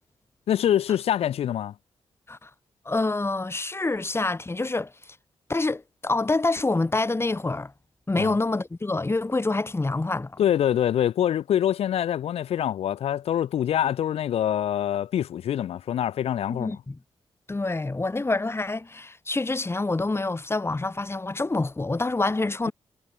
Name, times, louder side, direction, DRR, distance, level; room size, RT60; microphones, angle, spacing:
voice 1, 0.5-1.7 8.2-8.3 10.4-16.8, left 10 dB, 85° left, 4.2 m, -25 dB
voice 2, 2.9-5.2 5.5-7.7 8.1-10.4 16.5-17.0 17.5-22.7, left 2 dB, 25° left, 5.6 m, -27 dB
cardioid pair, 70°, 10 cm